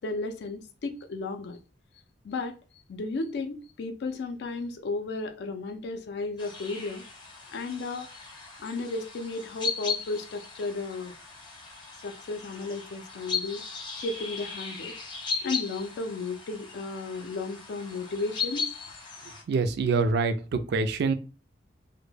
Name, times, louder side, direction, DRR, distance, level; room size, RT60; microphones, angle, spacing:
voice 1, 0.0-1.6 2.2-2.5 2.9-7.0 7.5-8.1 8.6-11.1 12.0-13.6 13.9-14.9 15.4-18.6, left 3 dB, 65° left, 0.4 m, -34 dB
sound 1, 6.4-19.4, left 5 dB, 25° left, 0.6 m, -37 dB
voice 2, 19.5-21.1, right 4 dB, 65° right, 0.3 m, -25 dB
2.2 x 2.1 x 3.2 m
head